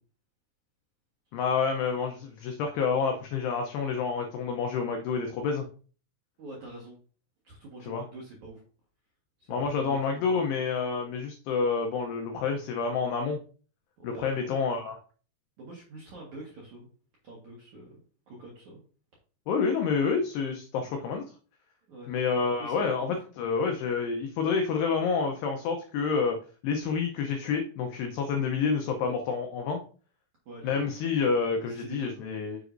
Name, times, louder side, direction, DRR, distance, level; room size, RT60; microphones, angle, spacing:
voice 1, 1.3-5.7 7.9-8.0 9.5-13.4 14.0-15.0 19.5-21.2 22.1-26.4 26.6-29.8 30.6-32.6, left 5 dB, 85° left, 3 dB, 2.3 m, -28 dB
voice 2, 6.4-7.0 7.4-8.6 9.4-10.5 14.0-14.6 15.6-16.9 17.2-18.0 18.3-18.8 21.9-22.1 22.6-23.2 30.5-30.9 31.6-32.3, right 2 dB, 65° right, -4 dB, 1.9 m, -45 dB
7.9 x 6.9 x 2.6 m, 0.40 s
omnidirectional pair, 5.8 m